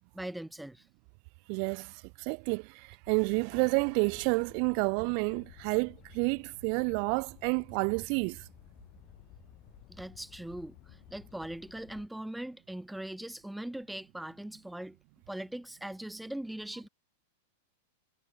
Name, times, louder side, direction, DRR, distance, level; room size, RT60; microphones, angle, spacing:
voice 1, 0.1-0.8 9.9-15.0 15.3-16.9, right 1 dB, 5° right, 0.7 m, -40 dB
voice 2, 1.5-8.4, right 40 dB or more, 50° right, 0.6 m, -30 dB
sound 1, 3.0-12.1, left 21 dB, 40° left, 2.3 m, -55 dB
hypercardioid pair, 135°, 0 cm